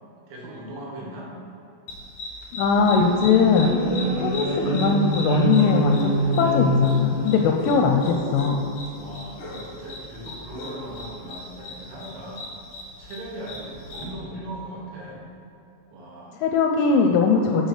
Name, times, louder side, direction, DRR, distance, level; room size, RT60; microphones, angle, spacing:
voice 1, 0.3-1.3 9.0-12.5 13.0-15.2 15.9-16.4, right 1 dB, 80° right, -4 dB, 4.3 m, -38 dB
sound 1, 1.9-14.1, left 2 dB, 55° left, 2.2 m, -38 dB
voice 2, 2.5-3.8 4.2-8.6 16.4-17.7, left 5 dB, 85° left, 3 dB, 3.0 m, -20 dB
sound 2, 2.7-7.8, left 1 dB, 45° right, 2.4 m, -25 dB
8.2 x 6.6 x 6.5 m, 2.9 s
omnidirectional pair, 5.9 m